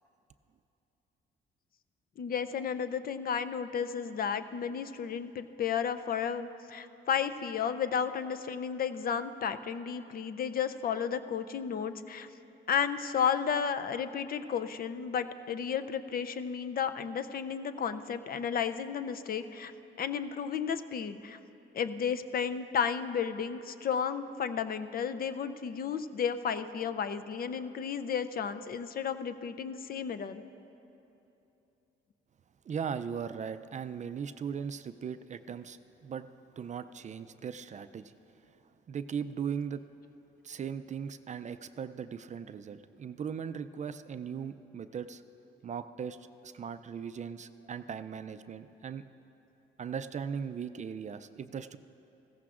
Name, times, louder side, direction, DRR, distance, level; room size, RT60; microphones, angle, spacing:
voice 1, 2.2-12.3 12.7-19.7 20.0-21.4 21.7-30.4, left 7 dB, 50° left, 10 dB, 0.5 m, -33 dB
voice 2, 32.7-36.3 36.6-38.1 38.9-39.8 40.4-45.2 45.6-46.2 46.4-49.0 49.8-51.8, right 7 dB, 35° right, 11 dB, 0.4 m, -38 dB
16.0 x 14.5 x 2.5 m, 2.9 s
cardioid pair, 90°, 20 cm